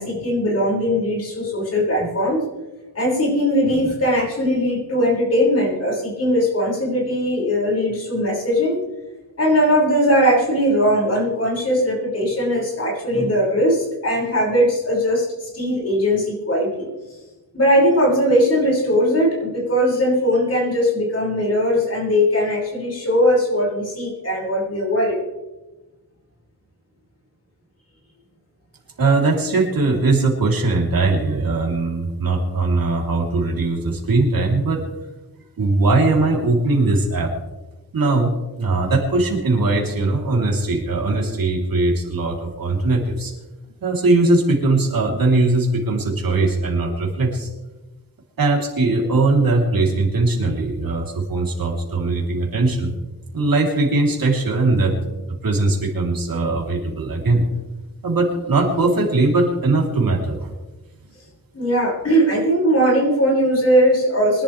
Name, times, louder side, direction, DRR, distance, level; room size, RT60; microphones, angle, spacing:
voice 1, 0.0-2.4 2.9-8.8 9.4-16.9 17.5-25.2 61.5-64.4, equal, 40° left, -4 dB, 6.1 m, -19 dB
voice 2, 29.0-34.8 35.6-37.3 37.9-43.3 43.8-47.5 48.4-52.9 53.3-55.0 55.4-57.4 58.0-60.5, right 3 dB, 60° right, -1 dB, 3.7 m, -20 dB
25.0 x 11.5 x 3.4 m, 1.1 s
wide cardioid pair, 175°, 38 cm